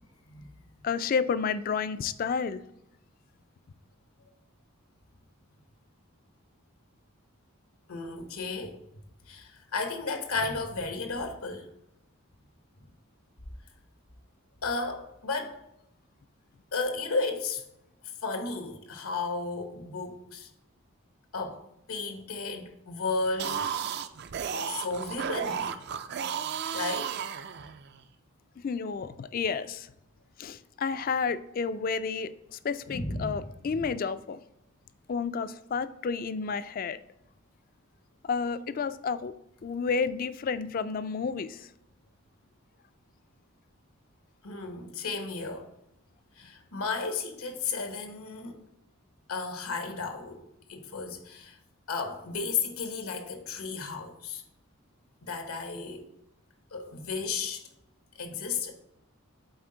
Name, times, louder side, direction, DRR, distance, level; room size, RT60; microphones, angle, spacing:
voice 1, 0.8-2.6 28.6-29.9 30.4-34.4 35.1-37.0 38.2-39.3 39.6-41.7, left 5 dB, 40° left, 14 dB, 0.3 m, -31 dB
voice 2, 7.9-8.8 9.3-11.7 14.6-15.6 16.7-17.6 18.2-20.5 21.3-21.6 21.9-23.7 24.6-25.8 26.7-27.2 32.9-33.9 44.4-45.7 46.4-48.6 49.3-50.4 50.7-51.6 51.9-54.4 55.2-56.1 56.7-57.6 58.1-58.7, left 4 dB, 85° left, 6 dB, 1.0 m, -33 dB
sound 1, 23.2-28.0, right 7 dB, 50° right, 0.4 m, -33 dB
8.0 x 4.2 x 3.8 m, 0.83 s
head